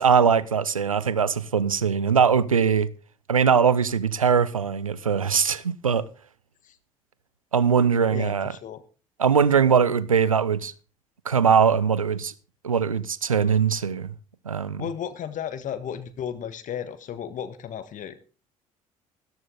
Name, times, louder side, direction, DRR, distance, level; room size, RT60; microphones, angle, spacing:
voice 1, 0.0-2.9 3.3-6.1 7.5-8.5 9.2-10.7 11.3-12.3 12.6-14.1 14.5-14.9, right 6 dB, 90° right, 0.5 m, -21 dB
voice 2, 8.1-8.8 14.8-18.2, left 9 dB, 50° left, 1.4 m, -34 dB
13.5 x 12.5 x 3.8 m
figure-of-eight pair, 50°, 17 cm